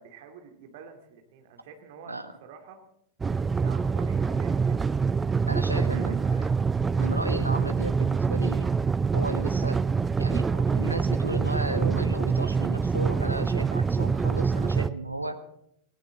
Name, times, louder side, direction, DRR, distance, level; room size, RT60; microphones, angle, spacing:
voice 1, 0.0-2.8 3.4-4.9 5.9-6.1, right 6 dB, 50° right, 5 dB, 2.5 m, -48 dB
voice 2, 2.1-2.4 5.4-6.5 7.0-8.7 9.1-9.8 10.2-15.4, right 2 dB, 85° right, 9 dB, 1.3 m, -34 dB
sound 1, 3.2-14.9, right 5 dB, 15° right, 0.5 m, -25 dB
18.5 x 18.5 x 3.8 m, 0.72 s
figure-of-eight pair, 90°, 0 cm